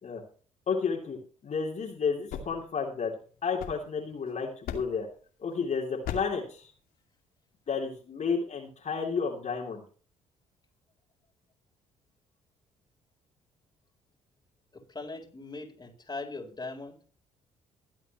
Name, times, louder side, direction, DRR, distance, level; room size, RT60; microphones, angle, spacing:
voice 1, 0.7-1.2 1.4-3.1 3.4-5.1 5.4-6.7 7.7-9.8, left 5 dB, 45° left, -1 dB, 3.4 m, -31 dB
sound 1, 2.1-4.2 4.6-5.1 6.0-6.5, left 7 dB, 65° left, 2.6 m, -40 dB
voice 2, 14.7-17.0, left 3 dB, 25° left, 2 dB, 4.1 m, -40 dB
22.0 x 8.2 x 3.1 m, 0.39 s
hypercardioid pair, 50°, 16 cm